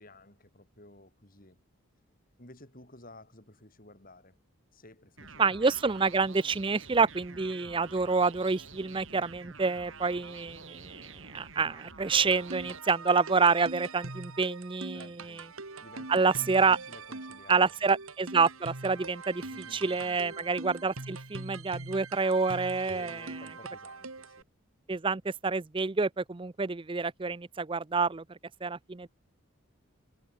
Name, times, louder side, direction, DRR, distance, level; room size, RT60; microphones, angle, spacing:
voice 1, 0.0-1.6 2.4-4.4 4.7-5.6 5.9-6.0 14.9-15.5 15.8-17.9 19.5-20.5 22.9-24.5, left 1 dB, 40° left, 5.9 m, -53 dB
sound 1, 5.2-12.8, right 4 dB, 65° right, 7.8 m, -48 dB
voice 2, 5.4-15.4 16.1-16.8 17.5-19.4 19.7-23.3 24.9-28.2 28.6-29.1, right 4 dB, 25° right, 0.5 m, -28 dB
sound 2, 12.1-24.4, right 3 dB, 80° right, 2.4 m, -43 dB
head